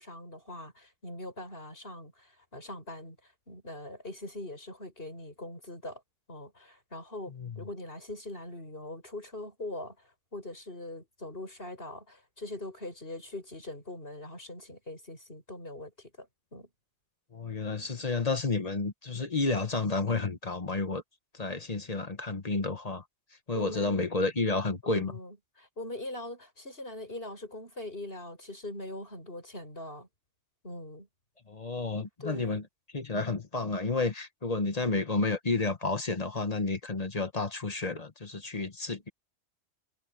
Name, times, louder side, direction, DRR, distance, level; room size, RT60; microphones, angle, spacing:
voice 1, 0.0-6.0 6.3-16.7 23.5-24.0 24.8-30.1 30.6-31.1 32.2-32.6, left 1 dB, 55° left, 8.1 m, -42 dB
voice 2, 7.3-7.6 17.3-21.0 21.3-23.0 23.5-25.1 31.5-32.6 32.9-39.1, left 3 dB, 35° left, 1.4 m, -31 dB
omnidirectional pair, 1.2 m